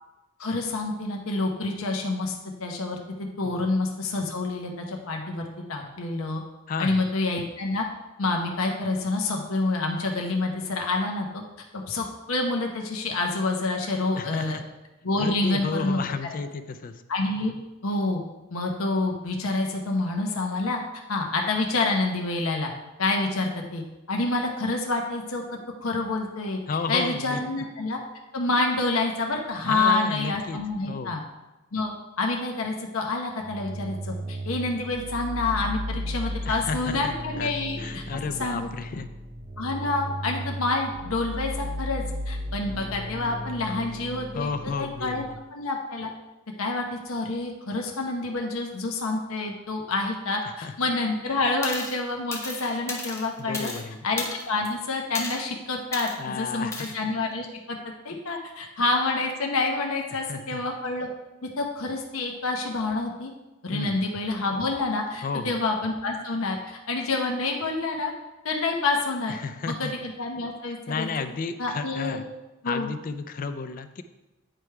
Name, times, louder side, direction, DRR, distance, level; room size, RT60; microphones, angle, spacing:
voice 1, 0.4-2.3 2.6-6.4 6.8-7.8 8.2-11.4 11.7-14.6 15.0-16.0 17.1-17.5 17.8-18.2 18.5-20.8 21.1-22.7 23.0-23.8 24.1-25.4 25.8-26.6 26.9-28.0 28.3-31.2 31.7-38.0 38.4-38.7 39.6-44.5 44.8-45.2 45.5-46.1 46.6-53.7 54.0-57.8 58.0-61.1 61.6-63.3 63.6-68.1 68.4-69.3 69.8-71.1 71.6-72.2 72.6-72.9, left 3 dB, 85° left, 1 dB, 0.8 m, -28 dB
voice 2, 6.7-7.0 14.2-14.6 15.2-17.0 26.7-27.6 29.6-30.6 30.9-31.2 36.5-37.5 37.8-39.1 44.3-45.3 50.4-50.7 53.4-54.1 56.2-57.0 60.3-60.6 63.7-64.0 65.2-65.6 69.3-69.9 70.7-72.2 72.6-74.0, left 4 dB, 40° left, 10 dB, 0.4 m, -32 dB
sound 1, 33.4-45.4, equal, 40° right, 0.5 m, -35 dB
sound 2, 51.6-52.0 52.3-53.8 54.2-54.7 55.1-55.5 55.9-56.2 56.7-56.9, left 2 dB, 15° left, 0.8 m, -34 dB
8.9 x 3.3 x 4.6 m, 1.1 s
head